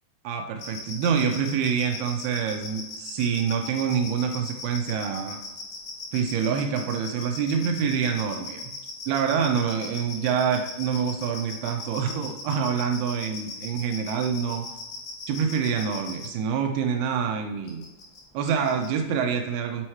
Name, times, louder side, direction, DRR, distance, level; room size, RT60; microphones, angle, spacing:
voice 1, 0.2-5.4 6.1-8.6 9.1-14.7 15.3-17.8 18.3-19.9, right 7 dB, 85° right, 4 dB, 2.2 m, -26 dB
sound 1, 0.6-16.3 17.7-18.2 18.4-18.9, left 4 dB, 70° left, 2.0 m, -38 dB
7.1 x 3.1 x 4.3 m, 1.0 s
omnidirectional pair, 5.1 m